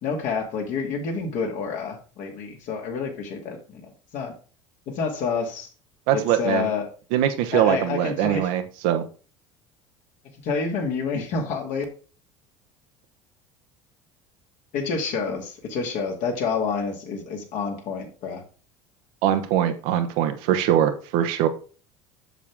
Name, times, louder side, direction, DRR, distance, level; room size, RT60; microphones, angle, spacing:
voice 1, 0.0-3.8 4.1-4.3 4.9-5.7 6.1-6.9 7.5-8.5 10.4-11.8 14.7-18.4, left 5 dB, 55° left, 2 dB, 2.3 m, -28 dB
voice 2, 6.1-6.7 7.1-9.0 19.2-21.5, right 10 dB, 60° right, 8 dB, 1.0 m, -22 dB
7.3 x 7.1 x 3.6 m, 0.37 s
figure-of-eight pair, 70°, 16 cm